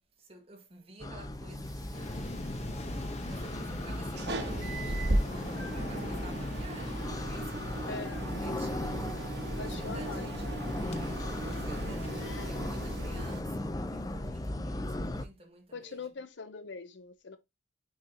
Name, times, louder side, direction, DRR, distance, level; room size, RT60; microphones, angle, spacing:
voice 1, 0.0-16.2, right 2 dB, 30° right, 1.6 m, -52 dB
sound 1, 1.0-15.3, left 1 dB, 20° left, 0.5 m, -37 dB
sound 2, 1.6-13.4, right 1 dB, 55° right, 1.5 m, -37 dB
Waves surf, 1.9-12.5, left 1 dB, 35° left, 0.9 m, -43 dB
voice 2, 7.9-8.2 9.6-10.3 12.2-12.5 15.7-17.4, left 4 dB, 70° left, 0.6 m, -42 dB
6.3 x 5.6 x 2.9 m
head